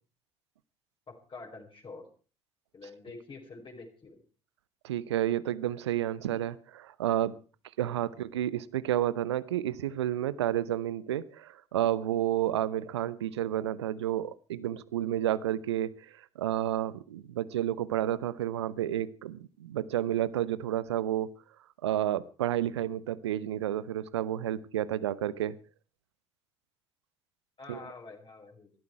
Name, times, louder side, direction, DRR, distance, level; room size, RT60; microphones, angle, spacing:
voice 1, 1.1-2.0 2.7-4.2 27.6-28.7, left 3 dB, 35° left, 1 dB, 5.1 m, -47 dB
voice 2, 4.8-7.3 7.8-21.3 21.8-25.5 27.7-27.8, right 12 dB, 75° right, 18 dB, 0.8 m, -31 dB
19.5 x 13.5 x 4.6 m, 0.37 s
figure-of-eight pair, 50°, 14 cm